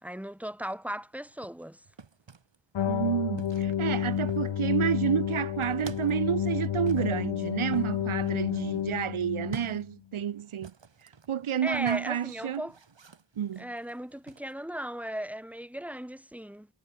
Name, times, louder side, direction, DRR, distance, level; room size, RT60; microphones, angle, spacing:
voice 1, 0.0-1.8 11.6-12.8 13.6-16.7, equal, 5° right, 2.6 m, -37 dB
sound 1, 1.3-2.6 3.4-4.7 5.0-6.2 6.9-14.5, right 5 dB, 65° right, 5.6 m, -50 dB
sound 2, 2.7-9.8, left 10 dB, 70° left, 0.8 m, -30 dB
voice 2, 2.9-10.7 11.3-12.6 13.4-13.7, right 9 dB, 90° right, 1.0 m, -30 dB
wide cardioid pair, 85°, 48 cm